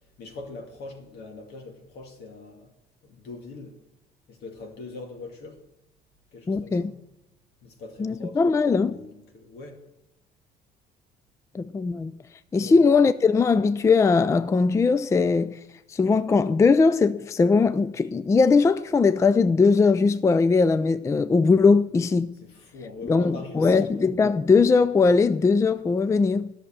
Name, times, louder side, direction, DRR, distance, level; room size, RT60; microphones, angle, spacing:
voice 1, 0.2-2.7 3.0-3.8 4.3-5.6 6.3-7.0 7.6-9.8 12.6-12.8 22.4-24.0, left 3 dB, 75° left, 2.1 m, -42 dB
voice 2, 6.5-6.9 8.0-9.0 11.5-12.1 12.5-15.6 15.9-22.4 23.0-26.5, left 4 dB, 15° left, 0.3 m, -20 dB
11.0 x 6.6 x 7.5 m
cardioid pair, 110°, 17 cm